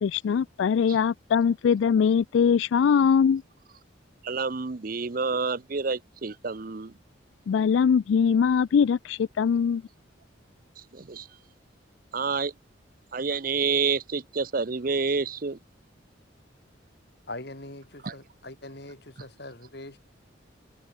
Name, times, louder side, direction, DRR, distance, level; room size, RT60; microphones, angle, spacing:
voice 1, 0.0-3.4 7.5-9.8, left 6 dB, 70° left, 0.3 m, -22 dB
voice 2, 4.2-6.9 10.9-11.3 12.1-12.5 13.1-15.6 18.0-18.2, right 4 dB, 45° right, 0.6 m, -28 dB
voice 3, 17.3-20.0, left 2 dB, 55° left, 3.8 m, -42 dB
head